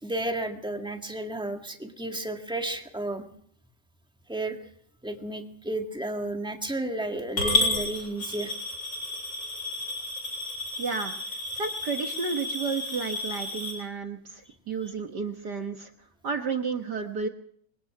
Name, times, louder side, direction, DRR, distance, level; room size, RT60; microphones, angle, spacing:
voice 1, 0.0-3.3 4.3-4.6 5.0-8.5 14.8-14.9, right 1 dB, 5° right, 4 dB, 0.7 m, -32 dB
Coin (dropping) / Glass, 7.4-13.7, left 1 dB, 35° left, 7.6 m, -31 dB
voice 2, 10.8-11.1 11.5-15.9 16.2-17.3, right 5 dB, 50° right, 6 dB, 1.2 m, -32 dB
24.5 x 18.0 x 6.0 m, 0.63 s
omnidirectional pair, 3.6 m